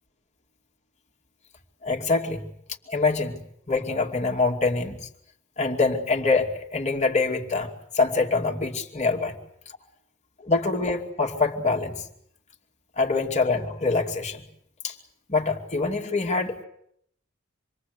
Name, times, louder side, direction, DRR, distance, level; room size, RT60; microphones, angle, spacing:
voice 1, 1.8-2.5 2.9-3.4 3.7-5.1 5.6-9.4 10.4-12.1 13.0-14.5 14.8-14.9 15.3-16.6, left 3 dB, 35° left, 2 dB, 2.6 m, -25 dB
27.0 x 22.0 x 8.2 m, 0.72 s
head